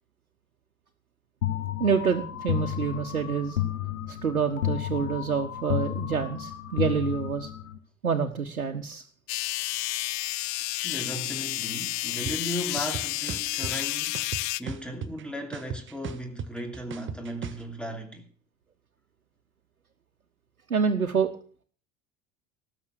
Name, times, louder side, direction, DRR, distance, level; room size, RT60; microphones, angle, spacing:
sound 1, 1.4-7.8, left 12 dB, 70° left, 1.7 m, -32 dB
voice 1, 1.8-3.6 4.1-7.5 8.0-9.0 20.7-21.3, right 6 dB, 80° right, 1.4 m, -27 dB
sound 2, 9.3-14.6, left 23 dB, 45° left, 0.7 m, -31 dB
voice 2, 10.8-14.3 14.6-18.2, equal, ahead, 2.9 m, -36 dB
sound 3, 12.3-12.4 12.8-13.7 14.1-15.2 15.5-17.6, right 6 dB, 30° right, 1.5 m, -36 dB
19.0 x 7.3 x 6.6 m
figure-of-eight pair, 75°, 42 cm